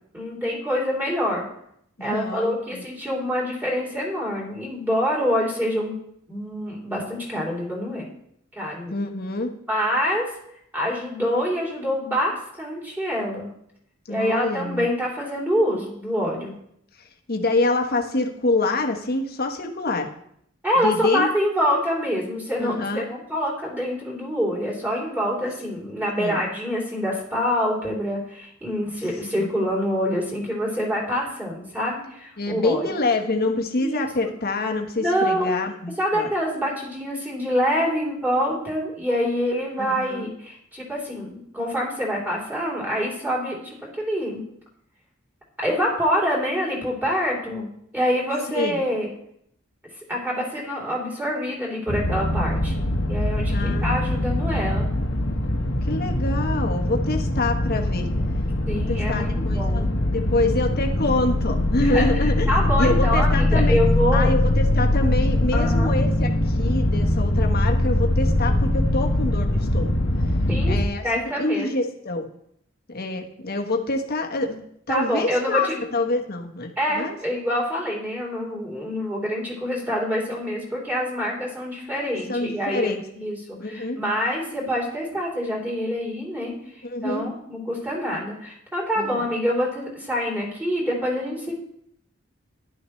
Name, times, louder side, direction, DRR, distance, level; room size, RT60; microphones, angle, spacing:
voice 1, 0.1-1.5 2.0-6.0 6.3-8.1 8.5-8.9 9.7-10.3 10.7-13.5 14.1-16.5 20.6-32.9 33.8-34.3 35.0-35.6 36.0-44.4 45.6-47.7 47.9-49.1 50.1-52.7 53.1-54.9 58.7-59.9 61.8-62.1 62.5-64.3 65.5-65.9 68.5-68.6 70.5-70.8 71.0-71.7 74.9-75.8 76.8-86.5 87.0-91.5, equal, 10° right, -4 dB, 3.5 m, -26 dB
voice 2, 2.0-2.8 8.9-9.5 14.1-14.9 17.3-20.1 20.8-21.3 22.6-23.1 26.2-26.4 29.4-29.5 32.4-36.3 39.8-40.3 48.5-48.8 53.5-54.2 55.8-58.1 58.9-59.8 60.1-62.5 62.8-63.8 64.1-70.0 70.7-71.0 71.4-72.3 72.9-77.2 82.3-83.0 83.6-84.0 86.8-87.2 89.0-89.2, left 2 dB, 50° left, 3 dB, 1.3 m, -26 dB
sound 1, 51.9-70.8, left 1 dB, 70° left, 1.4 m, -22 dB
11.5 x 11.0 x 3.2 m, 0.72 s
head